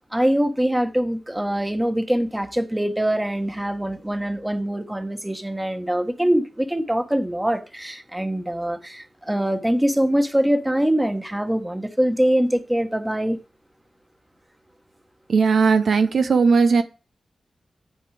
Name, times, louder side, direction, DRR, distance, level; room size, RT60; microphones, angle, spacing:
voice 1, 0.1-13.4, right 1 dB, 10° right, 1.3 m, -23 dB
voice 2, 15.3-16.8, right 5 dB, 70° right, 0.7 m, -17 dB
9.3 x 7.8 x 4.9 m
cardioid pair, 55°, 0 cm